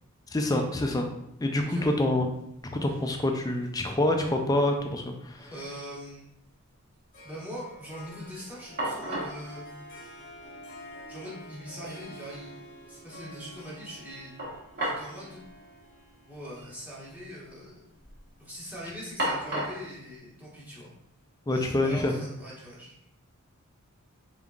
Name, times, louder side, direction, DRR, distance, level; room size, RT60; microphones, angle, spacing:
voice 1, 0.3-1.1 1.4-2.3 2.6-5.5 21.5-22.1, left 1 dB, 15° left, 3 dB, 0.4 m, -26 dB
sound 1, 2.3-2.4 2.6-3.2 3.6-4.5 4.7-4.8 8.3-8.4 8.8-9.4 10.5-10.6 11.0-11.1 14.4-15.1 15.4-15.5 16.5-16.7 17.0-17.5 17.9-18.3 19.2-19.9, right 1 dB, 45° right, 1.1 m, -34 dB
voice 2, 5.3-6.2 7.2-9.6 11.1-12.5 12.9-14.4 14.8-15.4 16.3-17.9 18.4-20.9 21.5-23.0, equal, 10° right, -8 dB, 1.2 m, -42 dB
Harp, 7.1-18.6, equal, 40° left, 0.9 m, -49 dB
3.9 x 3.6 x 2.3 m, 0.79 s
head